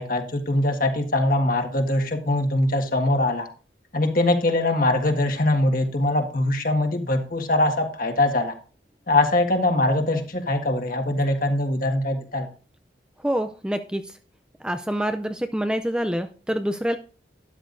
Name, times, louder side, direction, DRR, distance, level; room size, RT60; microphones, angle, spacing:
voice 1, 0.0-3.5 3.9-8.5 9.1-12.5, left 1 dB, 50° left, 4 dB, 1.6 m, -22 dB
voice 2, 13.2-14.2 14.6-17.0, equal, 5° right, 8 dB, 0.4 m, -26 dB
12.5 x 10.5 x 2.6 m, 0.38 s
head